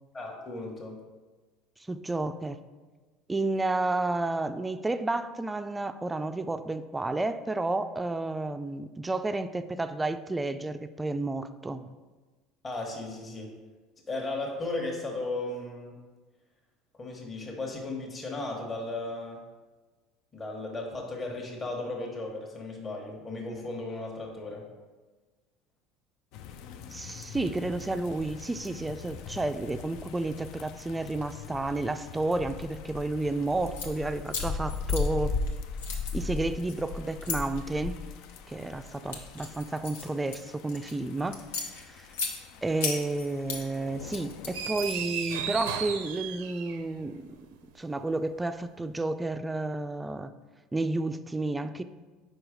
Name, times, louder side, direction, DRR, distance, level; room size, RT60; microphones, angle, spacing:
voice 1, 0.1-1.0 12.6-13.6 14.1-16.0 17.0-19.4 20.3-24.6, left 2 dB, 30° left, -1 dB, 1.2 m, -35 dB
voice 2, 1.9-2.6 3.3-11.9 26.9-35.3 36.1-38.0 38.5-42.1 42.6-47.4 47.8-50.3 50.7-51.8, right 2 dB, 15° right, 11 dB, 0.3 m, -31 dB
sound 1, 26.3-45.0, left 5 dB, 65° left, 0.4 m, -39 dB
sound 2, 33.6-33.9 34.3-35.5 35.8-37.4 38.1-38.4 38.9-40.9 41.3-42.3 42.8-43.6 44.0-45.2, left 5 dB, 90° left, 0.8 m, -36 dB
sound 3, 44.5-47.0, right 7 dB, 85° right, 0.5 m, -34 dB
4.7 x 4.6 x 4.9 m, 1.3 s
supercardioid pair, 90°, 0 cm